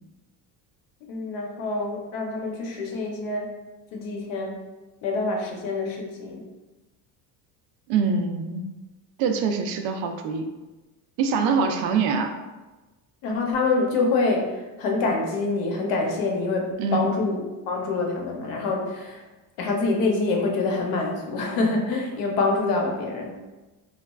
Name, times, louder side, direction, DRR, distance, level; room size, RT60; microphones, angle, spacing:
voice 1, 1.1-3.5 3.9-4.6 5.0-6.5 13.2-17.4 17.7-19.2 19.6-23.4, left 3 dB, 55° left, 1 dB, 0.6 m, -26 dB
voice 2, 7.9-8.6 9.2-10.4 11.2-12.3 16.8-17.1, right 5 dB, 75° right, 5 dB, 0.5 m, -24 dB
4.1 x 2.3 x 2.2 m, 1.1 s
cardioid pair, 180°, 43 cm